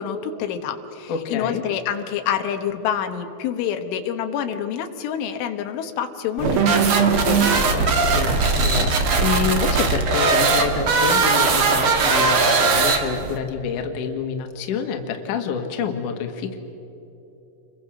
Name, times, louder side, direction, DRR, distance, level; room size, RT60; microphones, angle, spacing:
voice 1, 0.0-7.4, left 8 dB, 85° left, 7 dB, 3.8 m, -27 dB
voice 2, 1.1-1.6 7.7-16.6, left 6 dB, 55° left, 4 dB, 2.8 m, -27 dB
sound 1, 6.4-13.4, right 4 dB, 60° right, 1.4 m, -19 dB
29.0 x 23.0 x 6.4 m, 3.0 s
omnidirectional pair, 5.4 m